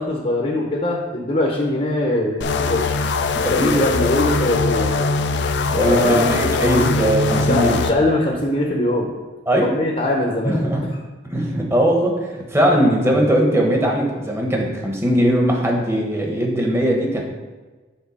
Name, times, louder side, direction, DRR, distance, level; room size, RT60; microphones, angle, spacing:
voice 1, 0.0-2.9 3.5-4.9 5.8-6.4 6.8-6.9 7.5-9.1 9.6-10.6, left 1 dB, 35° left, 0 dB, 0.8 m, -21 dB
sound 1, 2.4-7.9, left 4 dB, 70° left, 0.4 m, -21 dB
voice 2, 3.4-3.8 5.7-7.8 9.5-9.7 10.4-10.8 11.3-17.2, right 1 dB, 15° right, 0 dB, 1.1 m, -19 dB
7.4 x 3.8 x 5.3 m, 1.3 s
head